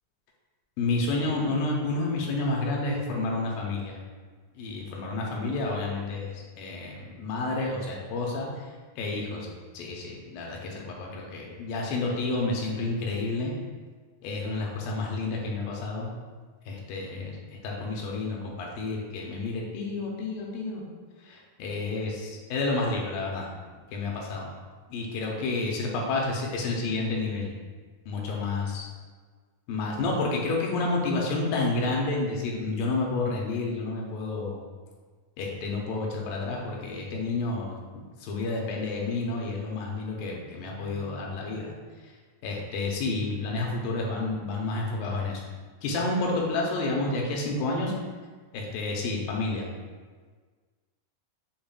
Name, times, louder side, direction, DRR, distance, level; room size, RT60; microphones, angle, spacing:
voice 1, 0.8-4.0 4.6-8.7 9.0-9.5 9.7-13.5 14.2-16.1 16.7-17.4 17.6-20.8 21.2-23.5 23.9-24.5 24.9-27.5 28.1-28.9 29.7-34.6 35.4-41.8 42.0-42.1 42.4-45.4 45.8-47.9 48.5-49.7, left 3 dB, 80° left, -1 dB, 2.3 m, -30 dB
6.8 x 3.1 x 2.2 m, 1.5 s
omnidirectional pair, 4.3 m